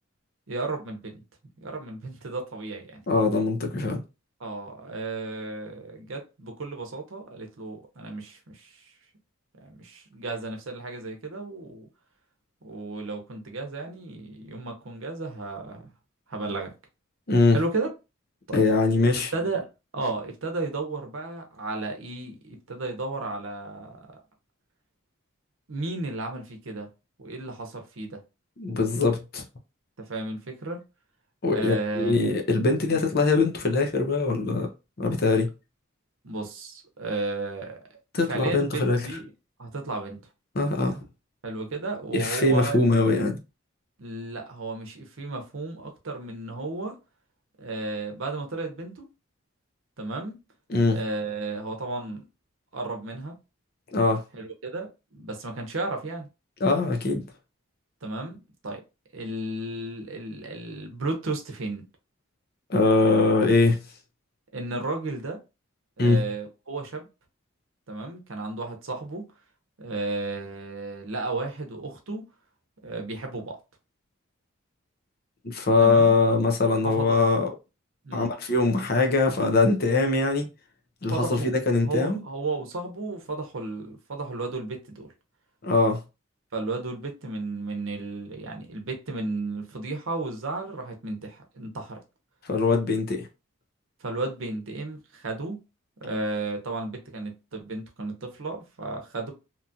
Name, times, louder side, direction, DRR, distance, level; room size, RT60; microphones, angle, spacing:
voice 1, 0.5-1.2 1.6-3.0 4.4-8.9 9.6-11.9 12.6-15.9 16.3-16.7 17.5-17.9 18.5-18.6 19.3-19.7 19.9-24.1 25.7-26.9 27.2-28.2 30.0-30.8 31.5-32.2 32.9-33.0 36.2-37.8 38.3-39.3 39.6-40.2 41.4-42.8 44.0-46.9 47.6-49.1 50.0-50.4 50.9-52.2 52.7-53.3 54.3-56.3 58.0-58.4 58.6-58.8 59.1-61.8 64.5-65.4 66.0-67.1 67.9-69.3 69.8-72.3 72.8-73.6 75.8-76.1 76.8-77.2 78.0-78.3 81.1-81.6 81.8-85.1 86.5-92.0 94.0-95.6 96.0-99.3, right 3 dB, 75° right, 0.8 m, -33 dB
voice 2, 3.1-4.0 17.3-17.6 18.5-19.3 28.6-29.4 31.4-34.7 35.0-35.5 38.1-39.0 40.5-41.0 42.1-43.4 50.7-51.0 53.9-54.2 56.6-57.2 62.7-63.8 66.0-66.2 75.4-77.5 78.1-80.5 81.0-82.2 85.6-86.0 92.4-93.3, left 3 dB, 45° left, 0.6 m, -22 dB
2.9 x 2.4 x 2.7 m
head